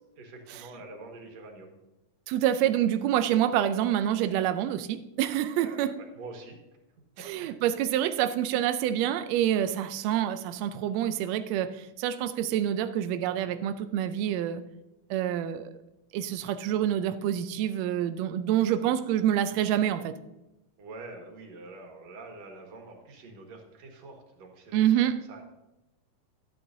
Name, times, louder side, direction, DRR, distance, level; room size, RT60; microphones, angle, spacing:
voice 1, 0.2-1.7 5.6-6.6 7.2-7.3 20.8-25.4, right 2 dB, 60° right, 2.6 m, -46 dB
voice 2, 2.3-6.0 7.2-14.6 15.1-15.7 16.1-20.1 24.7-25.2, right 11 dB, 85° right, 1.5 m, -27 dB
12.5 x 9.4 x 2.6 m
omnidirectional pair, 3.6 m